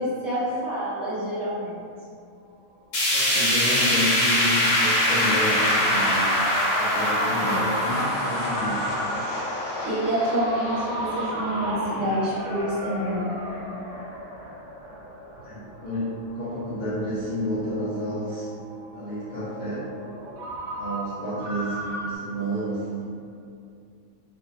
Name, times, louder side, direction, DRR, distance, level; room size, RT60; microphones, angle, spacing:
voice 1, 0.0-1.8 7.4-7.7 9.8-13.3, equal, 15° right, -12 dB, 0.8 m, -27 dB
Ringtone, 2.4-22.2, right 1 dB, 65° right, 0.8 m, -37 dB
sound 1, 2.9-13.1 13.5-13.6 14.0-14.1 14.9-15.0, left 1 dB, 60° left, 0.8 m, -24 dB
voice 2, 3.1-6.4 6.8-8.9 15.4-18.5 18.9-19.9 20.8-23.0, equal, 90° left, -11 dB, 0.4 m, -30 dB
2.5 x 2.2 x 2.4 m, 2.4 s
omnidirectional pair, 1.4 m